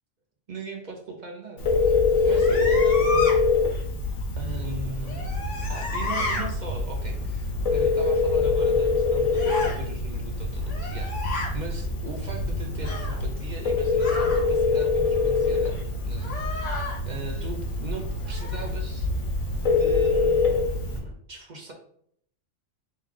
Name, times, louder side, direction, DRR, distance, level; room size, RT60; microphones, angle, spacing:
voice 1, 0.5-2.0 2.2-3.4 4.4-5.4 5.7-16.7 17.1-19.1 19.6-20.7 21.3-21.7, right 2 dB, 50° right, 1 dB, 0.6 m, -39 dB
Telephone, 1.6-21.0, left 4 dB, 90° left, 1.2 m, -25 dB
sound 1, 2.3-3.3 5.0-6.5 9.3-9.8 10.6-11.5 12.8-13.2 14.0-14.4 16.2-17.0 18.3-18.7, left 3 dB, 70° left, 1.3 m, -32 dB
sound 2, 4.3-21.1, equal, 65° right, 1.9 m, -39 dB
3.2 x 3.2 x 3.7 m, 0.66 s
omnidirectional pair, 1.3 m